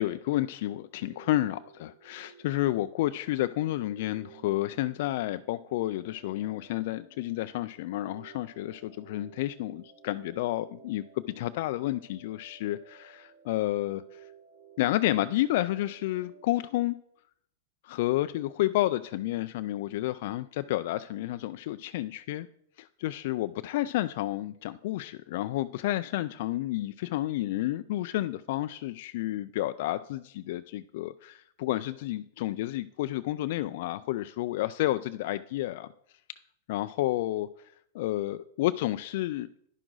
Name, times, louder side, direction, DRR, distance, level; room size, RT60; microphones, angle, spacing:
voice 1, 0.0-14.2 14.8-17.0 17.8-22.5 22.8-35.9 36.7-37.5 37.9-39.5, left 15 dB, 60° left, 12 dB, 0.3 m, -30 dB
sound 1, 0.7-16.6, right 7 dB, 70° right, 1.8 m, -55 dB
10.5 x 6.2 x 3.9 m, 0.68 s
hypercardioid pair, 135°, 0 cm